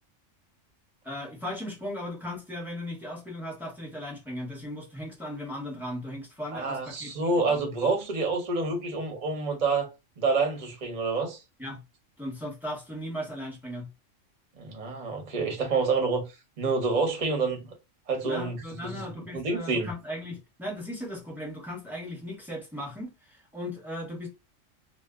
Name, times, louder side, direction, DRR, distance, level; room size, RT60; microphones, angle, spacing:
voice 1, 1.0-7.1 7.4-7.6 11.6-11.8 12.2-13.9 18.2-24.3, left 1 dB, ahead, 0.6 m, -37 dB
voice 2, 6.5-9.9 10.2-11.4 14.6-16.2 16.6-17.7 18.1-19.9, right 3 dB, 40° right, 0.8 m, -28 dB
2.1 x 2.1 x 3.4 m
omnidirectional pair, 1.3 m